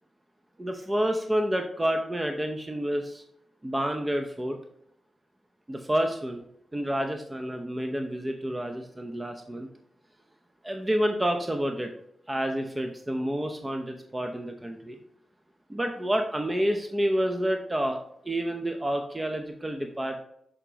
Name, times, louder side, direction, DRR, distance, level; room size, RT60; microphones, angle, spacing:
voice 1, 0.6-3.2 3.6-4.6 5.7-6.4 6.7-9.7 10.6-11.9 12.3-15.0 15.7-18.0 18.2-20.2, equal, 20° right, 4 dB, 0.8 m, -29 dB
6.6 x 5.0 x 2.9 m, 0.71 s
supercardioid pair, 40°, 0 cm